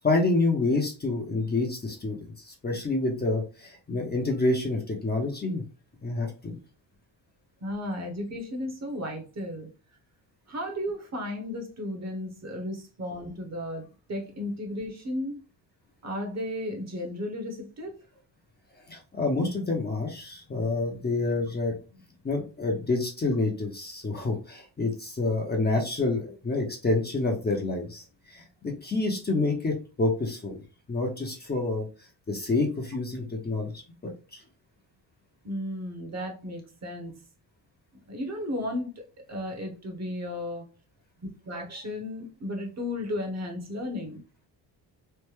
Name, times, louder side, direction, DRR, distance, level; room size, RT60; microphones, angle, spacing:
voice 1, 0.0-5.6 6.0-6.6 18.9-21.8 22.2-30.6 30.9-31.9 32.3-34.4, left 3 dB, 20° left, 0 dB, 0.7 m, -28 dB
voice 2, 7.6-9.7 10.5-15.4 16.0-17.9 35.4-37.1 38.1-38.9 39.3-40.6 41.2-44.2, left 1 dB, 35° right, 3 dB, 1.0 m, -34 dB
3.3 x 2.1 x 3.1 m, 0.34 s
cardioid pair, 100°, 44 cm